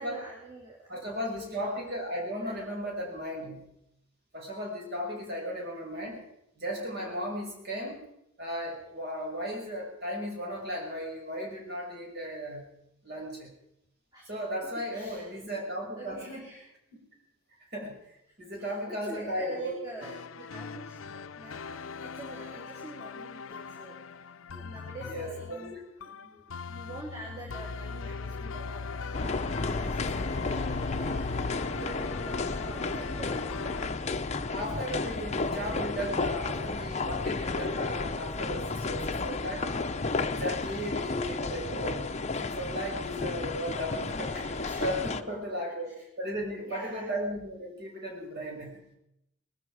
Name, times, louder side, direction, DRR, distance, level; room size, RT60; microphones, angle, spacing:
voice 1, 0.0-1.8 2.4-2.7 6.9-7.1 14.1-14.4 14.9-15.3 15.9-16.6 18.6-24.0 24.5-25.8 26.1-29.3 29.6-31.3 31.7-33.4 44.6-44.9 46.0-46.1 46.7-47.2, right 2 dB, 20° right, -4 dB, 3.3 m, -46 dB
voice 2, 0.9-3.8 4.3-6.2 6.6-8.0 8.4-12.6 13.0-13.5 14.3-16.4 17.7-20.1 25.1-25.8 34.5-39.9 40.2-42.1 42.4-48.9, equal, 50° right, -1 dB, 5.9 m, -36 dB
sound 1, 20.0-33.9, left 4 dB, 80° left, 0.6 m, -39 dB
sound 2, 29.1-45.2, left 3 dB, 35° left, 0.7 m, -32 dB
21.0 x 13.5 x 4.9 m, 0.82 s
head